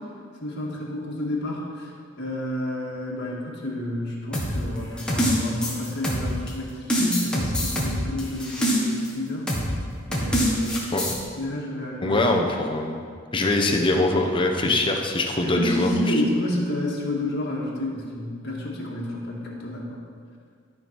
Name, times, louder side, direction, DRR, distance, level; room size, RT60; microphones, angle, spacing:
voice 1, 0.4-1.9 2.2-9.5 10.1-10.8 11.4-12.2 15.4-20.0, left 1 dB, 55° left, -3 dB, 1.8 m, -29 dB
sound 1, 4.3-6.5 6.9-9.1 9.5-9.7 10.1-11.1, equal, 5° left, 1.4 m, -24 dB
voice 2, 12.0-13.0 13.3-16.2, left 2 dB, 25° left, 2 dB, 0.8 m, -23 dB
13.0 x 6.1 x 4.6 m, 2.1 s
head